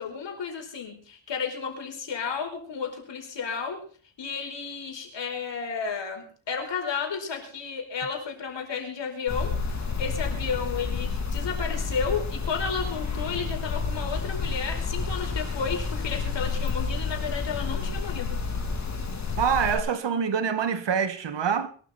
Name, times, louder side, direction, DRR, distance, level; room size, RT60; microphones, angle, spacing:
voice 1, 0.0-3.8 4.2-18.4, left 6 dB, 65° left, 4.8 m, -32 dB
sound 1, 9.3-19.8, left 4 dB, 35° left, 3.1 m, -30 dB
voice 2, 19.4-21.7, right 7 dB, 65° right, 1.8 m, -25 dB
22.5 x 12.5 x 4.3 m
wide cardioid pair, 120°, 46 cm